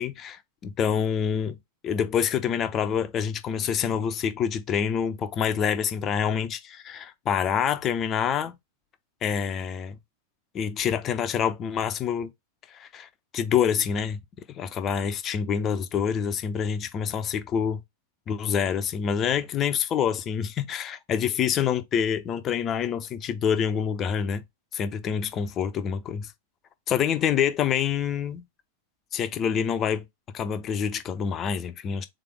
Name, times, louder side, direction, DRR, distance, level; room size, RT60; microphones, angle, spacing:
voice 1, 0.0-1.6 1.8-8.5 9.2-10.0 10.5-12.3 12.7-13.1 13.3-14.2 14.6-17.8 18.3-24.4 24.7-26.3 26.9-28.4 29.1-30.0 30.3-32.1, left 8 dB, 30° left, 0.8 m, -26 dB
3.8 x 3.4 x 3.4 m
figure-of-eight pair, 90°, 0 cm